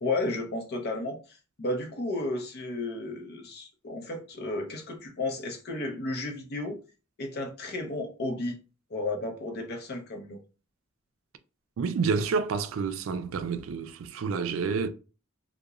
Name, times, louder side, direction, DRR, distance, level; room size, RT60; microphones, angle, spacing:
voice 1, 0.0-6.8 7.2-8.6 8.9-10.4, left 2 dB, 50° left, 0.7 m, -33 dB
voice 2, 11.8-14.9, right 5 dB, 70° right, 0.4 m, -29 dB
2.8 x 2.1 x 2.4 m
head